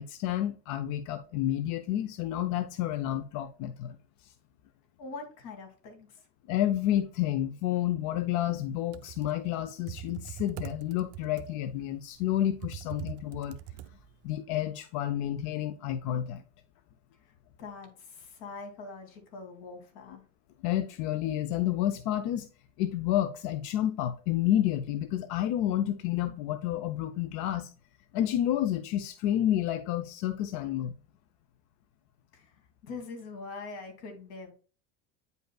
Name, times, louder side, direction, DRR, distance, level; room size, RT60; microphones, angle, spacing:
voice 1, 0.0-4.0 6.5-13.6 14.2-16.4 20.6-22.5 22.8-27.7 28.1-31.0, left 12 dB, 60° left, 0.6 m, -30 dB
voice 2, 5.0-6.3 17.2-20.2 32.3-34.5, left 4 dB, 85° left, 2.6 m, -44 dB
Computer keyboard, 8.7-14.3, right 12 dB, 45° right, 0.6 m, -43 dB
9.1 x 5.3 x 2.3 m
cardioid pair, 145°, 34 cm